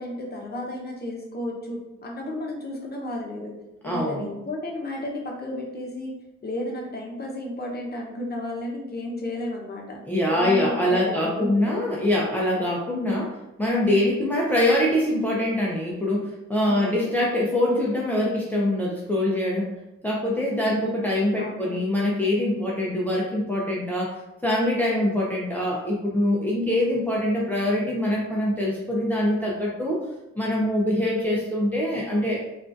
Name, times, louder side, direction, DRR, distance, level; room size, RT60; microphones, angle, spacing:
voice 1, 0.0-3.5 3.8-6.1 6.4-10.0 10.3-11.9 16.6-17.1 20.6-20.9 21.4-21.8, left 1 dB, 35° left, -1 dB, 0.9 m, -33 dB
voice 2, 3.8-4.3 10.0-19.7 20.0-30.0 30.4-32.4, left 1 dB, 5° left, -4 dB, 0.6 m, -24 dB
3.6 x 2.5 x 2.5 m, 0.96 s
cardioid pair, 90°, 30 cm